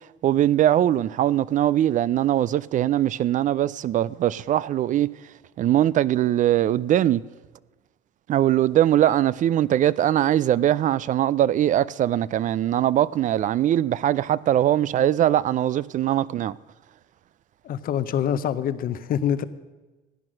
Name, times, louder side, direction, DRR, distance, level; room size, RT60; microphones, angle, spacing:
voice 1, 0.2-5.1 5.6-7.2 8.3-16.6, right 12 dB, 50° right, 0.4 m, -21 dB
voice 2, 17.6-19.4, left 9 dB, 60° left, 0.8 m, -25 dB
15.5 x 9.5 x 6.3 m
cardioid pair, 110°, 17 cm